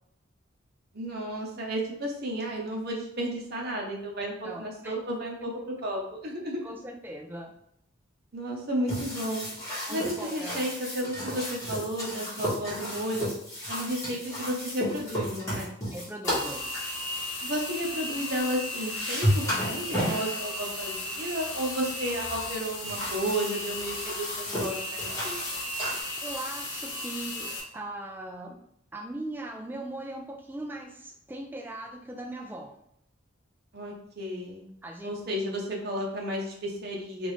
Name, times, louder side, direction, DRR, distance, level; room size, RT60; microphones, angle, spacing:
voice 1, 0.9-5.5 5.8-6.7 8.3-9.5 9.9-13.3 13.7-15.7 17.4-25.6 33.7-34.7 35.0-37.3, equal, 50° right, -1 dB, 0.8 m, -33 dB
voice 2, 4.4-5.0 6.6-7.5 9.9-10.6 15.9-16.6 26.2-28.6 28.9-32.8 34.8-35.1, right 1 dB, 10° right, 3 dB, 0.4 m, -39 dB
sound 1, 8.9-16.9 18.3-18.4 18.7-20.4 21.0-21.3 22.0-26.0, equal, 15° left, 1.3 m, -33 dB
sound 2, 16.2-27.6, left 2 dB, 60° left, 0.9 m, -35 dB
3.7 x 2.5 x 3.1 m, 0.73 s
head